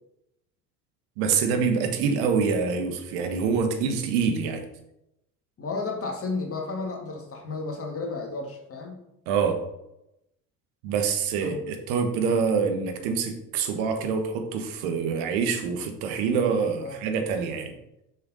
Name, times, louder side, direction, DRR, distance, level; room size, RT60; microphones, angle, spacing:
voice 1, 1.2-4.6 9.3-9.6 10.8-17.7, right 5 dB, 55° right, 5 dB, 1.5 m, -26 dB
voice 2, 5.6-9.0 11.4-11.6 16.8-16.9, left 3 dB, 30° left, 1 dB, 2.0 m, -32 dB
6.6 x 5.8 x 4.1 m, 0.86 s
figure-of-eight pair, 70°, 48 cm